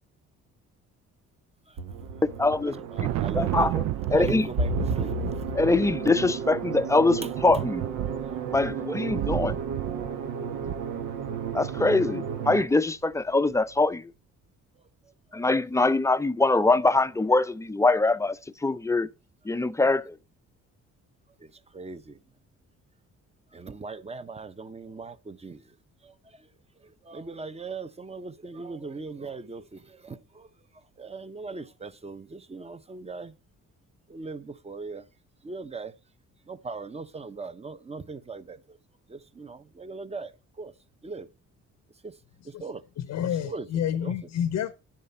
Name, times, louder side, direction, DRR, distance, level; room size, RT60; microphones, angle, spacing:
sound 1, 1.8-12.6, right 5 dB, 90° right, 1.2 m, -33 dB
voice 1, 2.2-3.1 3.3-3.8 4.1-4.5 5.5-7.9 8.5-9.6 11.5-14.1 15.3-19.1 19.4-20.2, left 3 dB, 10° left, 0.5 m, -23 dB
Thunder, 2.4-11.8, right 13 dB, 70° right, 0.5 m, -33 dB
voice 2, 2.9-3.7 4.1-5.6 8.2-8.3 15.0-15.1 21.4-22.2 23.5-25.8 26.0-26.5 26.8-33.4 34.1-35.1 35.4-35.9 36.4-38.8 39.1-40.7 41.0-41.3 42.0-42.2 42.4-42.8 43.4-44.3, right 4 dB, 20° right, 0.8 m, -40 dB
voice 3, 43.1-44.7, left 9 dB, 65° left, 0.7 m, -28 dB
10.5 x 7.6 x 4.3 m
cardioid pair, 90°, 30 cm